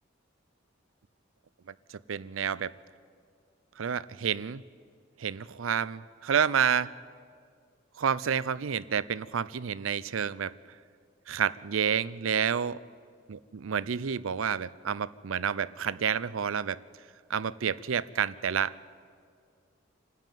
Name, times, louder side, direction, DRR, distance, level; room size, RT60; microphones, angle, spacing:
voice 1, 2.1-2.7 3.8-4.6 5.2-6.9 8.0-10.5 11.3-12.8 13.3-16.8 17.3-18.9, right 7 dB, 85° right, 18 dB, 0.5 m, -29 dB
26.0 x 13.0 x 9.2 m, 2.1 s
head